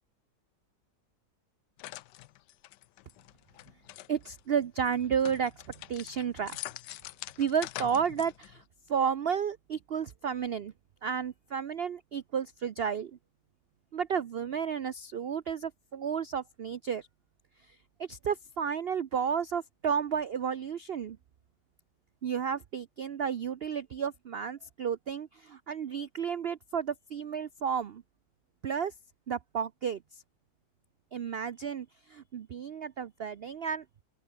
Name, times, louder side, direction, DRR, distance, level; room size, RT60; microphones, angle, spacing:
sound 1, 1.8-4.4 4.9-8.6, left 16 dB, 80° left, 1.2 m, -44 dB
voice 1, 4.1-5.6 5.9-6.6 7.4-8.6 8.9-10.7 11.0-13.2 13.9-17.1 17.6-21.2 22.2-28.0 28.6-28.9 29.3-30.2 31.1-34.0, right 7 dB, 70° right, 0.5 m, -32 dB
open air
omnidirectional pair, 1.9 m